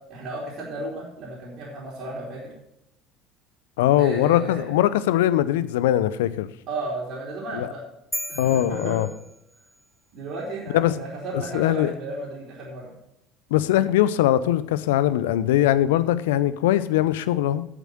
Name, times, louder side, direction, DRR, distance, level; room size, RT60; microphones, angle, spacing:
voice 1, 0.1-2.5 4.0-4.7 6.7-7.8 8.3-9.1 10.1-12.9, right 2 dB, 55° right, -4 dB, 3.3 m, -34 dB
voice 2, 3.8-6.5 7.5-7.7 8.4-9.1 10.7-10.9 11.5-11.9 13.5-17.6, left 13 dB, 75° left, 15 dB, 0.6 m, -21 dB
sound 1, 8.1-9.9, equal, ahead, 0.8 m, -36 dB
8.3 x 7.5 x 7.7 m, 0.77 s
hypercardioid pair, 65°, 0 cm